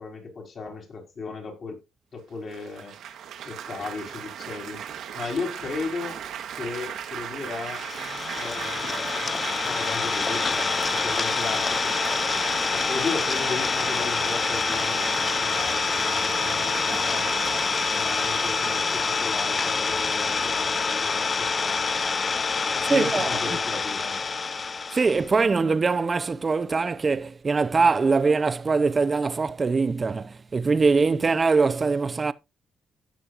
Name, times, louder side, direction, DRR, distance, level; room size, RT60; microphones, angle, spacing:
voice 1, 0.0-1.8 2.1-2.9 3.4-4.8 5.1-6.2 6.6-7.8 8.3-12.0 12.7-17.4 17.9-21.9 22.7-24.2, left 4 dB, 50° left, 4.2 m, -35 dB
Laughter / Applause / Chatter, 2.5-21.6, right 9 dB, 75° right, 1.4 m, -37 dB
Idling, 7.5-25.3, left 4 dB, 35° left, 0.5 m, -26 dB
voice 2, 22.9-23.3 24.9-32.3, right 4 dB, 30° right, 0.6 m, -22 dB
15.5 x 6.4 x 2.5 m
cardioid pair, 90°, 0 cm